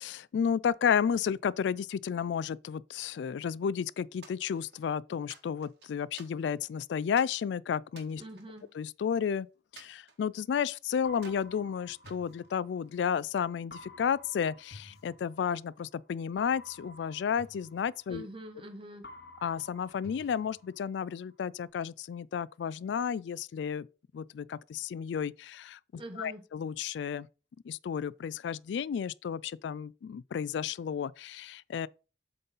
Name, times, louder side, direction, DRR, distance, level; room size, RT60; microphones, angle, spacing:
voice 1, 0.0-8.2 8.8-9.5 9.7-18.3 19.4-23.9 24.1-25.8 26.2-27.3 27.7-31.9, left 7 dB, 80° left, 0.3 m, -32 dB
sound 1, 4.2-4.9 5.3-6.7 7.2-7.4 7.9-9.2 9.8-10.8 11.2-11.5 12.0-13.1, right 4 dB, 70° right, 1.8 m, -54 dB
voice 2, 8.2-8.7 18.1-19.1 26.0-26.4, right 1 dB, 30° right, 1.2 m, -45 dB
sound 2, 11.0-13.1 13.7-15.8 16.4-18.7 19.0-21.1, left 2 dB, 60° left, 0.9 m, -52 dB
7.9 x 3.9 x 5.4 m
head